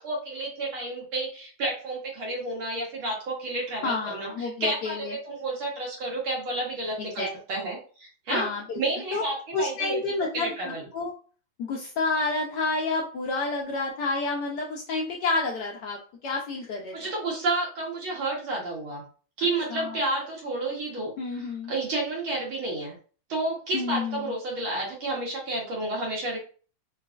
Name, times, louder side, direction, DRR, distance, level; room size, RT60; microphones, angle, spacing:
voice 1, 0.0-8.5 8.8-10.0 10.3-10.8 16.9-19.0 19.4-23.0 23.3-26.4, right 2 dB, 75° right, -3 dB, 1.7 m, -31 dB
voice 2, 3.8-5.1 7.0-7.3 8.3-8.8 9.1-9.2 9.5-11.1 11.6-17.1 19.7-20.0 21.2-21.7 23.7-24.3, left 3 dB, 80° left, 0 dB, 0.9 m, -29 dB
4.0 x 2.2 x 2.3 m, 0.39 s
omnidirectional pair, 2.3 m